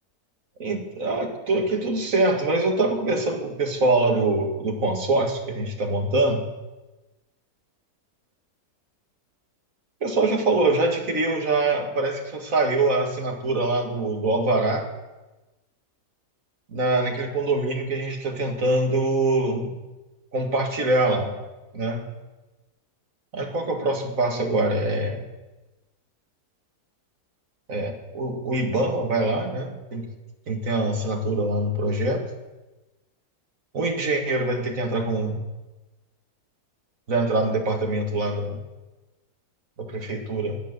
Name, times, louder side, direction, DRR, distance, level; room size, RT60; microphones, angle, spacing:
voice 1, 0.6-6.4 10.0-14.9 16.7-19.7 20.3-21.4 21.7-22.1 23.3-25.3 27.7-30.1 30.5-32.2 33.7-35.4 37.1-38.6 39.8-40.6, right 2 dB, 60° right, 3 dB, 2.3 m, -24 dB
17.0 x 10.5 x 6.7 m, 1.1 s
omnidirectional pair, 1.6 m